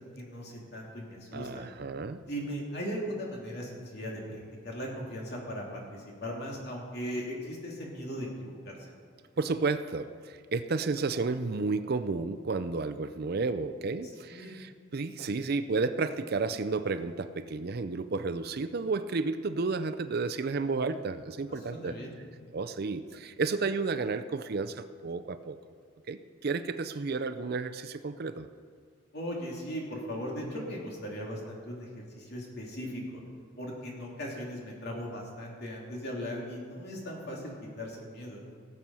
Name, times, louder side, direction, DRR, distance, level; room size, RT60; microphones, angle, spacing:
voice 1, 0.2-1.6 2.3-8.9 14.2-14.5 21.5-22.1 29.1-31.9 32.1-33.2 33.6-38.4, equal, 50° left, -2 dB, 2.9 m, -38 dB
voice 2, 1.3-2.2 9.4-21.9 22.5-25.6 26.1-28.5, right 4 dB, 50° right, 12 dB, 0.5 m, -32 dB
18.0 x 7.6 x 5.6 m, 2.1 s
head